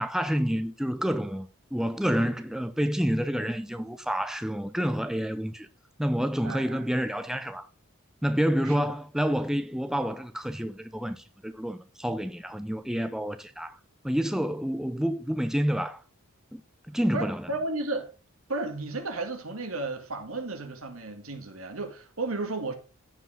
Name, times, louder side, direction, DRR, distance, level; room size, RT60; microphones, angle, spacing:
voice 1, 0.0-5.7 6.0-7.7 8.2-13.8 14.0-16.0 16.5-16.6 16.9-17.5, equal, ahead, 0.4 m, -28 dB
voice 2, 6.4-6.9 8.6-9.0 17.1-18.1 18.5-22.7, right 2 dB, 75° right, 2.0 m, -33 dB
14.5 x 4.9 x 3.7 m
head